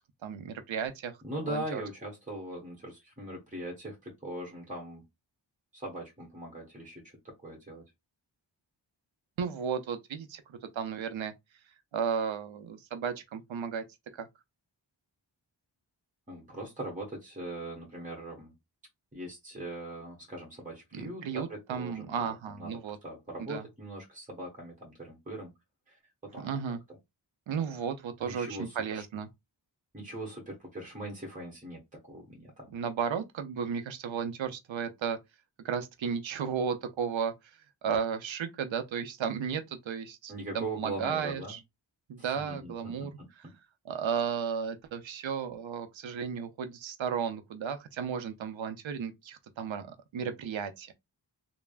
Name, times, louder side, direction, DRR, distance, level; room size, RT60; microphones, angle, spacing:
voice 1, 0.2-1.1 1.5-1.8 9.4-11.3 11.9-13.8 14.1-14.3 20.9-23.0 23.4-23.6 26.4-26.8 27.5-29.3 32.7-35.2 35.6-37.3 37.8-41.6 42.1-43.1 43.9-50.9, right 7 dB, 85° right, 0.6 m, -34 dB
voice 2, 1.2-5.0 5.7-7.8 16.3-18.5 19.1-25.5 25.9-27.0 28.2-29.0 29.9-32.7 40.3-41.6 42.2-43.5, right 1 dB, 15° right, 1.1 m, -41 dB
3.3 x 2.0 x 2.3 m
wide cardioid pair, 50°, 46 cm